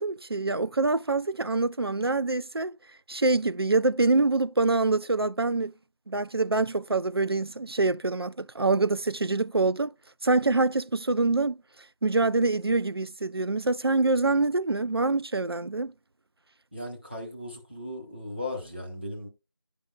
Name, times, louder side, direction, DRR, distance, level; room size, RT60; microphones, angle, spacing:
voice 1, 0.0-2.7 3.1-5.7 6.1-9.9 10.2-11.6 12.0-15.9, right 3 dB, 60° right, 0.4 m, -25 dB
voice 2, 16.7-19.3, left 1 dB, 20° right, 1.1 m, -37 dB
11.0 x 5.3 x 2.3 m
figure-of-eight pair, 175°, 14 cm